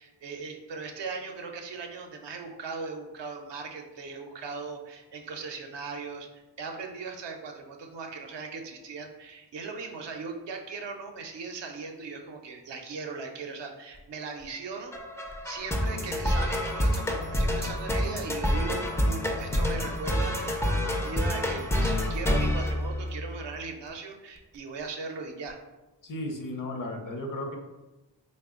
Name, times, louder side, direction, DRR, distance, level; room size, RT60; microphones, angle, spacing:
voice 1, 0.0-14.9 15.4-25.6, right 4 dB, 75° right, 3 dB, 0.6 m, -39 dB
sound 1, 14.9-23.5, left 1 dB, 5° left, 0.3 m, -28 dB
voice 2, 26.0-27.6, left 1 dB, 50° left, 3 dB, 0.6 m, -34 dB
3.3 x 2.1 x 3.6 m, 1.1 s
wide cardioid pair, 80°, 43 cm